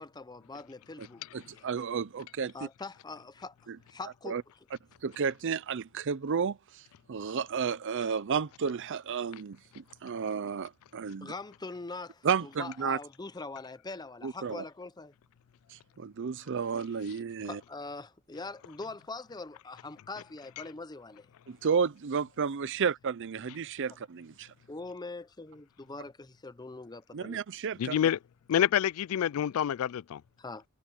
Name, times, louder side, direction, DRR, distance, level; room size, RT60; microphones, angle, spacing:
voice 1, 0.0-1.7 2.5-4.4 11.2-15.1 17.4-21.3 24.7-27.4 30.4-30.6, left 3 dB, 20° left, 0.6 m, -43 dB
voice 2, 1.3-2.5 3.7-3.8 4.3-4.4 5.0-11.3 12.2-13.0 14.2-14.6 15.7-17.6 21.5-24.5 27.1-28.0, right 6 dB, 55° right, 0.5 m, -32 dB
voice 3, 27.8-28.2 28.5-30.2, left 9 dB, 70° left, 0.3 m, -27 dB
head